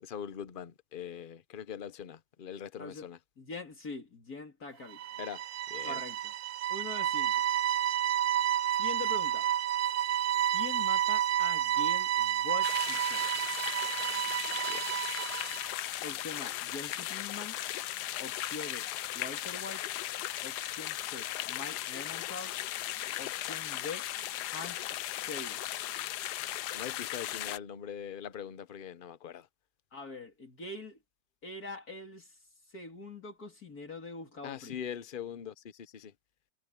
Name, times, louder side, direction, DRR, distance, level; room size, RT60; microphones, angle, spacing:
voice 1, 0.0-3.2 5.2-5.4 5.7-6.0 14.7-14.9 26.7-29.5 34.4-36.1, left 8 dB, 40° left, 0.8 m, -42 dB
voice 2, 3.4-5.0 5.8-6.3 6.7-7.4 8.7-9.5 10.5-13.3 16.0-17.6 18.2-18.9 19.2-19.8 20.4-22.6 23.2-24.1 24.4-25.6 29.9-31.0 31.4-32.4 32.7-34.8, left 3 dB, 65° left, 3.4 m, -43 dB
sound 1, 4.9-15.7, right 11 dB, 65° right, 0.9 m, -30 dB
sound 2, 12.6-27.6, left 13 dB, 90° left, 1.2 m, -37 dB
omnidirectional pair, 1.7 m